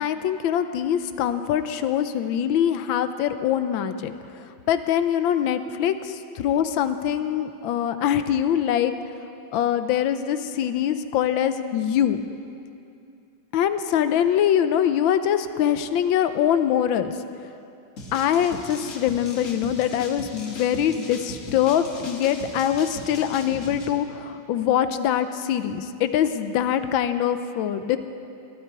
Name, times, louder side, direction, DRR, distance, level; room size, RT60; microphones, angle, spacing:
voice 1, 0.0-4.1 4.7-8.9 9.5-12.2 13.5-17.1 18.1-28.0, left 9 dB, 75° left, 11 dB, 1.4 m, -23 dB
sound 1, 18.0-23.9, left 3 dB, 45° left, 1.5 m, -39 dB
22.0 x 12.0 x 4.7 m, 2.6 s
omnidirectional pair, 2.2 m